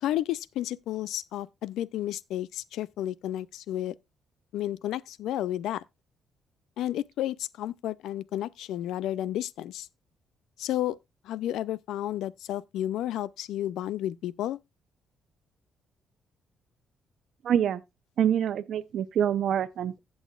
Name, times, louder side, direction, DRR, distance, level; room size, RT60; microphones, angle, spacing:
voice 1, 0.0-3.9 4.5-5.8 6.8-9.9 10.6-11.0 11.2-14.6, left 12 dB, 85° left, 0.4 m, -32 dB
voice 2, 17.4-17.8 18.2-20.0, right 9 dB, 70° right, 0.6 m, -26 dB
15.5 x 6.3 x 2.3 m
cardioid pair, 90°, 0 cm